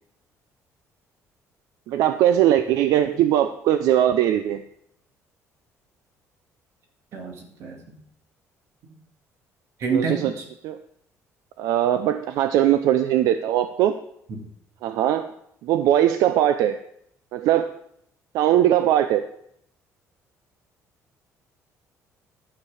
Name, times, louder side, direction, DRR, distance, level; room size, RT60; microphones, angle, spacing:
voice 1, 1.9-4.6 9.9-10.3 10.6-10.8 11.6-13.9 14.8-15.3 15.6-16.8 17.3-17.7 18.3-19.2, right 11 dB, 75° right, 10 dB, 0.5 m, -20 dB
voice 2, 7.1-7.8 9.8-10.4 14.3-14.5, right 4 dB, 50° right, 3 dB, 1.9 m, -28 dB
11.5 x 6.7 x 4.8 m, 0.71 s
cardioid pair, 180°, 6 cm